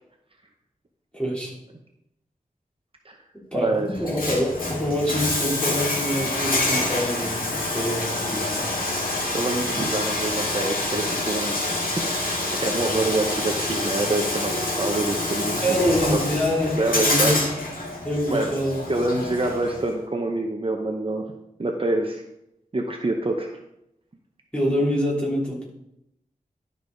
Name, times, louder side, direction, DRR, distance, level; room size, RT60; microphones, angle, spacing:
voice 1, 1.1-1.5 3.5-8.6 15.6-17.4 18.0-18.8 24.5-25.6, equal, 5° left, -5 dB, 3.2 m, -25 dB
voice 2, 3.5-3.9 9.3-11.6 11.8-16.2 16.7-17.4 18.3-18.5 18.9-21.3 21.6-22.2 22.7-23.6, right 2 dB, 40° right, 2 dB, 0.9 m, -26 dB
Bathtub (filling or washing), 3.9-19.9, left 2 dB, 75° left, 2.0 m, -27 dB
12.0 x 5.4 x 3.9 m, 0.82 s
wide cardioid pair, 90°, 15 cm